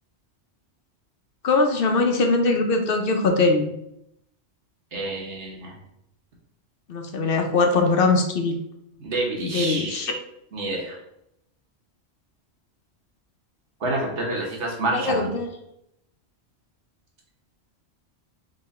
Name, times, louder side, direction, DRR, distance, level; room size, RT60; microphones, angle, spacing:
voice 1, 1.4-3.7 6.9-8.6 9.4-10.1 14.9-15.5, left 3 dB, 60° left, 4 dB, 0.8 m, -21 dB
voice 2, 4.9-5.7 9.0-10.0 10.5-11.0 13.8-15.3, right 2 dB, 85° right, -1 dB, 1.4 m, -28 dB
3.9 x 3.0 x 4.1 m, 0.80 s
omnidirectional pair, 1.1 m